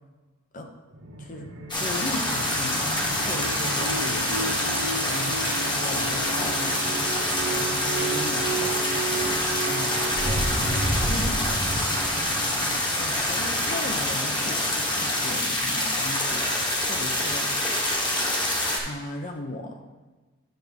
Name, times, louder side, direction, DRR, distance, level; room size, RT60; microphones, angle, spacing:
sound 1, 0.9-14.4, right 2 dB, 80° right, 1.0 m, -32 dB
sound 2, 1.7-18.8, left 1 dB, 25° left, 1.3 m, -26 dB
voice 1, 1.8-2.8 3.2-12.6 13.0-16.5 16.9-17.6 18.8-19.8, left 1 dB, 40° left, 4 dB, 0.8 m, -37 dB
10.5 x 6.1 x 3.5 m, 1.2 s
head